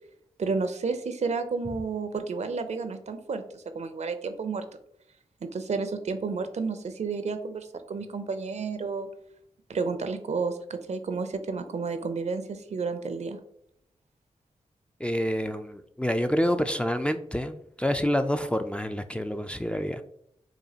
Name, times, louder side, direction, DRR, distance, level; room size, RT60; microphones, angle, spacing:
voice 1, 0.4-4.7 5.4-9.1 9.7-13.4, right 4 dB, 60° right, 9 dB, 0.5 m, -31 dB
voice 2, 15.0-20.0, equal, 10° left, 7 dB, 0.3 m, -28 dB
5.0 x 2.3 x 2.8 m, 0.72 s
cardioid pair, 45°, 13 cm